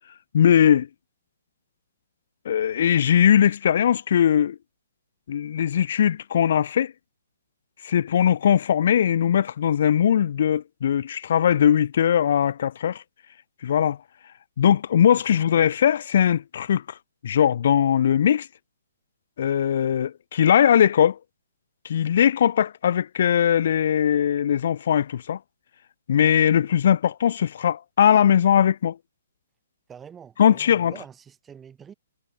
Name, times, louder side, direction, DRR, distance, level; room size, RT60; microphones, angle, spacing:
voice 1, 0.3-0.9 2.5-4.6 5.3-6.9 7.8-13.0 13.6-14.0 14.6-16.8 17.2-18.5 19.4-21.2 21.8-25.4 26.1-29.0 30.4-30.9, left 9 dB, 55° left, 0.5 m, -20 dB
voice 2, 15.1-15.7 29.9-31.9, right 7 dB, 15° right, 6.3 m, -46 dB
figure-of-eight pair, 130°, 0 cm